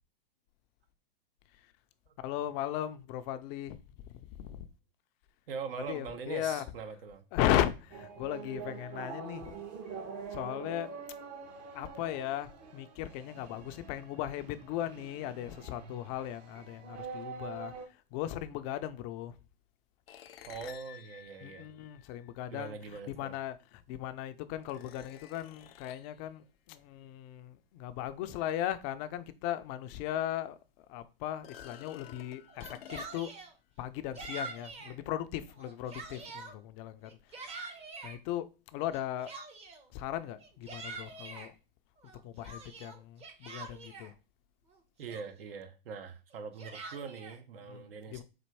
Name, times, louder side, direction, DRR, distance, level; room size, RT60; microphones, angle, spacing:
voice 1, 2.2-3.8 4.4-4.7 5.9-6.6 7.3-9.5 10.3-10.9 11.7-17.7 18.1-19.3 21.4-22.8 23.1-30.6 30.9-33.3 33.8-37.6 38.0-39.3 39.9-41.5 42.2-44.1 47.7-48.2, left 12 dB, 35° left, 0.4 m, -37 dB
voice 2, 5.5-7.2 20.5-21.7 22.5-23.3 45.0-48.2, right 5 dB, 70° right, 1.0 m, -42 dB
sound 1, 7.9-17.9, right 5 dB, 45° right, 1.0 m, -45 dB
sound 2, 20.1-22.6 23.8-23.9 24.6-26.2 29.5-29.6 30.0-30.1 31.3-33.4, left 10 dB, 80° left, 0.6 m, -52 dB
Yell, 32.5-33.5 34.2-35.0 35.5-36.6 37.0-38.2 38.9-39.9 40.4-41.5 42.0-44.1 44.7-44.8 45.1-45.6 46.3-47.4, right 3 dB, 20° right, 0.7 m, -45 dB
4.2 x 2.5 x 4.5 m
hypercardioid pair, 125°, 29 cm